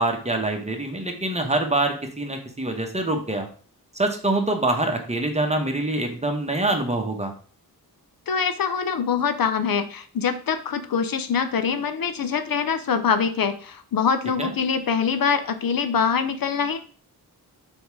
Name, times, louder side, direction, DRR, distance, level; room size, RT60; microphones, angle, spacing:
voice 1, 0.0-3.5 3.9-7.3 14.4-14.5, right 2 dB, 15° right, 3 dB, 1.1 m, -25 dB
voice 2, 8.3-16.8, left 6 dB, 65° left, 10 dB, 0.7 m, -24 dB
6.3 x 3.6 x 4.6 m, 0.42 s
wide cardioid pair, 135°, 38 cm